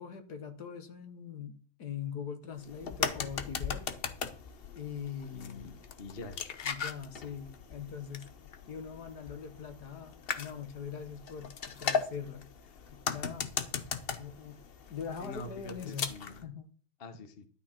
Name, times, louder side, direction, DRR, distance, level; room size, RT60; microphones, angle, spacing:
voice 1, 0.0-3.9 4.7-5.8 6.6-8.3 8.7-13.5 14.2-14.6 14.9-16.1 16.4-16.7, left 7 dB, 55° left, 8 dB, 1.7 m, -42 dB
sound 1, 2.6-16.4, left 6 dB, 80° left, 0.5 m, -38 dB
voice 2, 5.3-6.4 15.2-16.5 17.0-17.5, left 2 dB, 35° left, 8 dB, 1.1 m, -45 dB
12.5 x 8.4 x 4.4 m, 0.42 s
omnidirectional pair, 2.2 m